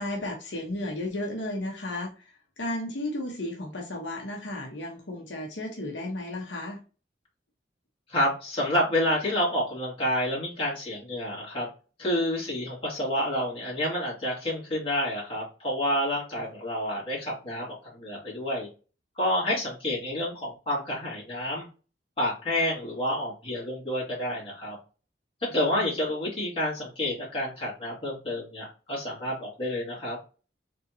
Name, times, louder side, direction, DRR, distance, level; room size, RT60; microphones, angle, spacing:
voice 1, 0.0-6.8 25.5-26.0, left 1 dB, 85° left, 0 dB, 1.2 m, -34 dB
voice 2, 8.1-11.7 12.0-18.7 19.2-21.7 22.2-24.8 25.4-30.2, left 1 dB, 30° left, -5 dB, 2.4 m, -29 dB
4.0 x 3.6 x 2.9 m, 0.33 s
head